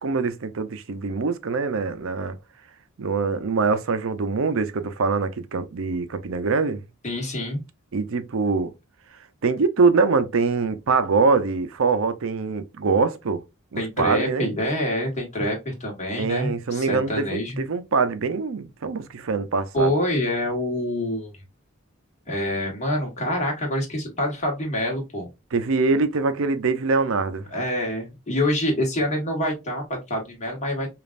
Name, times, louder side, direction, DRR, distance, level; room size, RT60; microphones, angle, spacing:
voice 1, 0.0-2.4 3.0-6.8 7.9-8.7 9.4-13.4 13.7-14.5 16.2-19.9 25.5-27.5, right 4 dB, 65° right, 0.6 m, -23 dB
voice 2, 7.0-7.6 13.8-17.6 19.7-21.3 22.3-25.3 27.5-30.9, left 1 dB, 35° left, 1.5 m, -26 dB
5.1 x 2.5 x 2.4 m
head